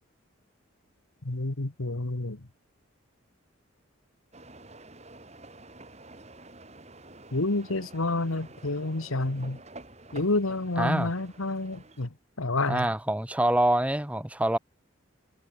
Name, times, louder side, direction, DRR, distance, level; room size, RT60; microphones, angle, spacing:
voice 1, 1.2-2.4 7.3-9.6 10.1-12.1 12.4-12.9, left 2 dB, 90° left, 1.6 m, -29 dB
sound 1, 4.3-12.1, right 2 dB, 30° right, 3.5 m, -49 dB
voice 2, 10.8-11.1 12.7-14.6, right 1 dB, 5° right, 0.8 m, -25 dB
head